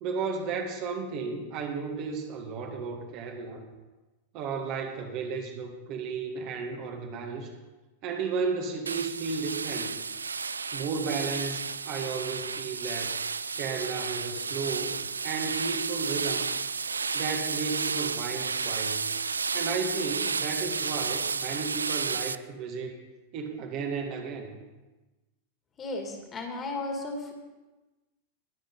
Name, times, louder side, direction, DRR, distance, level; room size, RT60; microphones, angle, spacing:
voice 1, 0.0-3.6 4.3-7.5 8.0-9.9 10.7-13.2 13.5-15.0 15.2-16.5 17.1-19.0 19.5-23.0 23.3-24.5, right 5 dB, 40° right, 2 dB, 1.8 m, -33 dB
sound 1, 8.9-22.4, right 5 dB, 75° right, 0.3 m, -32 dB
voice 2, 25.8-27.3, left 2 dB, 25° left, 2 dB, 2.5 m, -34 dB
20.5 x 7.3 x 3.9 m, 1.1 s
figure-of-eight pair, 90°, 0 cm